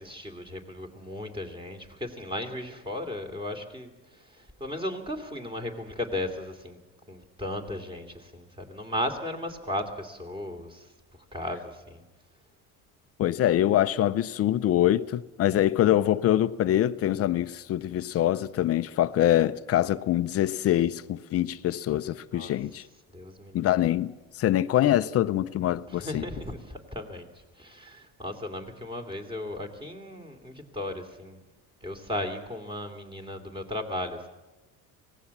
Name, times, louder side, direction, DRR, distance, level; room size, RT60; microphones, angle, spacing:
voice 1, 0.0-6.8 7.1-10.9 11.3-12.0 22.3-22.5 23.1-23.7 25.9-27.3 27.6-31.4 31.8-34.3, left 1 dB, 15° right, 3.0 m, -36 dB
voice 2, 13.2-22.8 23.5-26.3, left 12 dB, 40° left, 0.6 m, -24 dB
25.0 x 19.0 x 7.4 m
cardioid pair, 140°, 37 cm